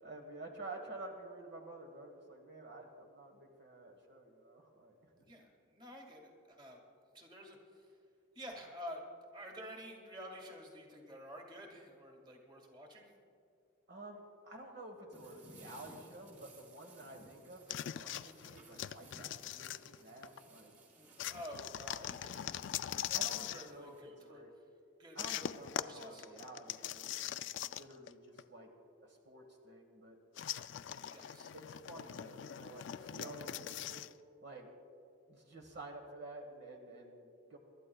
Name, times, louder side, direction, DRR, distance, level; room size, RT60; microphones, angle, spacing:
voice 1, 0.0-5.2 13.9-20.7 23.1-23.9 24.2-24.5 25.1-28.7 29.0-30.2 31.5-34.0 34.4-34.7 35.3-37.6, right 2 dB, 60° right, 2 dB, 1.3 m, -51 dB
voice 2, 5.2-6.8 7.1-8.0 8.3-9.0 9.3-13.1 20.9-24.7 25.0-26.3 31.1-31.5, equal, 25° right, 1 dB, 1.8 m, -50 dB
sound 1, 15.1-24.0, right 2 dB, 45° right, 3.4 m, -60 dB
sound 2, 17.7-20.4 21.2-23.7 25.2-28.1 28.4-28.5 30.4-34.1, left 11 dB, 65° left, 0.3 m, -41 dB
27.0 x 12.5 x 2.3 m, 2.4 s
head